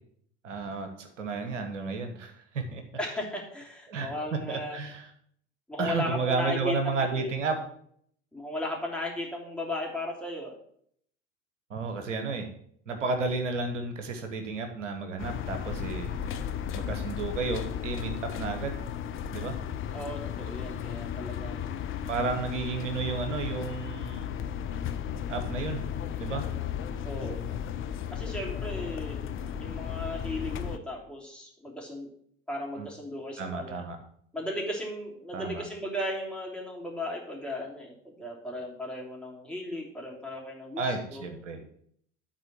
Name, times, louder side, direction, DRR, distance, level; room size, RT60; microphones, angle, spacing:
voice 1, 0.4-2.8 3.9-4.1 4.5-5.1 5.8-7.6 11.7-12.5 12.9-16.4 16.7-18.8 19.3-19.6 22.1-24.3 25.3-25.8 26.2-26.5 32.8-32.9 33.4-34.0 35.3-35.6 40.8-41.6, right 4 dB, 80° right, 6 dB, 1.3 m, -32 dB
voice 2, 3.0-4.8 5.7-7.3 8.3-10.5 19.9-22.0 27.0-27.4 28.1-29.2 29.6-32.1 32.5-33.8 34.3-41.2, left 1 dB, 5° left, -3 dB, 3.2 m, -36 dB
sound 1, 15.2-30.8, left 9 dB, 35° left, 0.8 m, -35 dB
10.5 x 4.3 x 7.4 m, 0.65 s
figure-of-eight pair, 75°, 36 cm